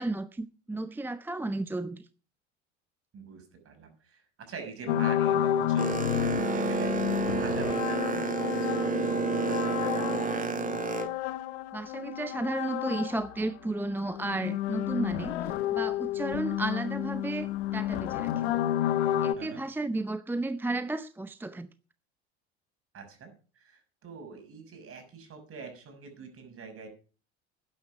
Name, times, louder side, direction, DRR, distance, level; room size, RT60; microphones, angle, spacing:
voice 1, 0.0-2.1 11.7-18.4 19.2-21.7, right 2 dB, 5° right, 0.6 m, -33 dB
voice 2, 3.1-6.9 7.3-10.6 19.3-19.6 22.9-26.9, right 5 dB, 40° right, 6.2 m, -45 dB
sound 1, 4.9-13.4 13.7-19.3, left 12 dB, 70° left, 1.1 m, -31 dB
Boat Water vehicle, 5.8-11.1, right 5 dB, 25° right, 1.8 m, -30 dB
12.5 x 10.0 x 5.8 m
hypercardioid pair, 70°, 34 cm